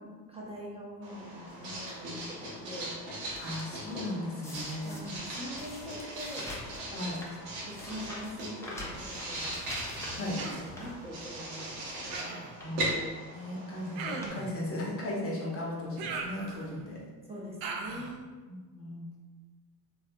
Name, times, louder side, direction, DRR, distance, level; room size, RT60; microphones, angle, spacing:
voice 1, 0.0-2.9 4.8-6.5 6.9-7.2 7.7-9.6 10.0-12.3 17.3-18.3, equal, 10° right, -4 dB, 0.8 m, -43 dB
Writing, 1.0-14.3, right 1 dB, 75° right, 1.0 m, -39 dB
sound 1, 1.5-1.9 2.5-4.0 4.4-11.5 11.9-12.0 12.5-12.8 13.7-13.8 14.0-14.4 14.7-14.8 15.7-15.8 16.2-16.7 17.5-17.6 17.7-17.8, left 1 dB, 5° left, 0.3 m, -46 dB
voice 2, 3.4-5.0 6.9-7.2 10.1-10.4 12.6-17.0 18.5-19.0, left 1 dB, 30° left, -3 dB, 0.8 m, -36 dB
Human voice, 10.4-10.7 12.1-12.6 13.9-14.5 16.0-16.9 17.6-18.1, right 4 dB, 55° right, 0.5 m, -38 dB
2.8 x 2.3 x 2.6 m, 1.4 s
hypercardioid pair, 70°, 48 cm